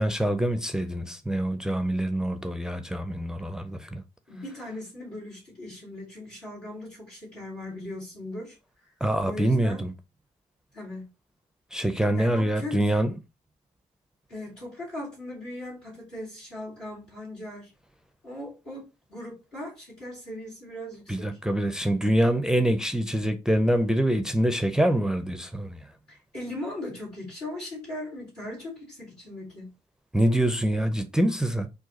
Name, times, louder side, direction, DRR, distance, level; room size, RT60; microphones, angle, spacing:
voice 1, 0.0-4.0 9.0-9.9 11.7-13.1 21.1-25.8 30.1-31.7, right 1 dB, 5° right, 0.5 m, -25 dB
voice 2, 4.3-8.6 9.2-9.8 10.7-11.0 12.1-12.8 14.3-17.7 18.2-21.4 26.1-29.7, left 1 dB, 85° left, 2.3 m, -38 dB
3.9 x 2.4 x 4.0 m
figure-of-eight pair, 40°, 20 cm